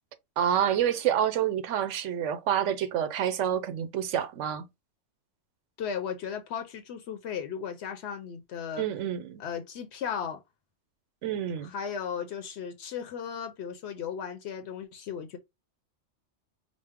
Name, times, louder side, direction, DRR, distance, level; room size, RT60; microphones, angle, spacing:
voice 1, 0.4-4.6 8.8-9.4 11.2-11.7, right 9 dB, 85° right, 0.9 m, -28 dB
voice 2, 5.8-8.8 9.4-10.4 11.6-15.4, left 7 dB, 70° left, 0.8 m, -36 dB
5.1 x 2.0 x 3.5 m
omnidirectional pair, 1.2 m